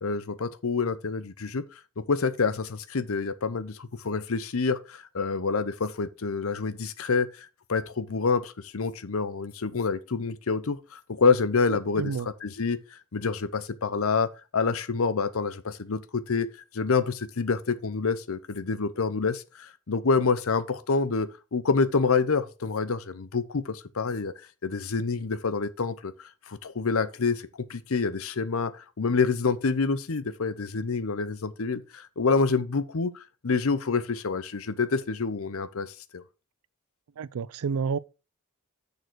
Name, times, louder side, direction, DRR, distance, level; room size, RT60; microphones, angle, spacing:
voice 1, 0.0-1.6 2.0-12.1 12.4-16.5 16.7-24.3 24.6-27.4 27.7-36.2, left 4 dB, 65° left, 0.7 m, -27 dB
voice 2, 11.7-12.3 37.2-38.0, right 5 dB, 75° right, 0.4 m, -30 dB
6.7 x 6.5 x 4.6 m
head